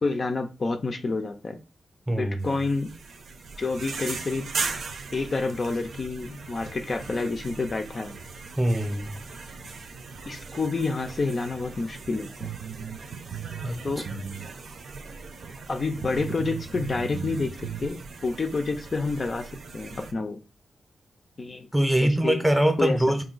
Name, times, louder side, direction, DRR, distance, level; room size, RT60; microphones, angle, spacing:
voice 1, 0.0-1.6 2.2-2.9 3.6-4.5 5.1-8.1 10.3-12.5 13.8-14.1 15.7-20.4 21.4-21.7 22.0-22.4 22.8-23.0, left 3 dB, 35° left, 0.4 m, -29 dB
voice 2, 2.1-2.5 8.6-9.2 13.6-14.0 21.7-23.2, right 1 dB, 10° right, 0.7 m, -23 dB
sound 1, 2.4-20.1, right 4 dB, 70° right, 0.7 m, -39 dB
sound 2, 12.4-14.5 14.8-14.9 15.5-15.6 16.0-17.9, right 9 dB, 90° right, 0.3 m, -37 dB
4.7 x 2.7 x 3.9 m
wide cardioid pair, 135°, 0 cm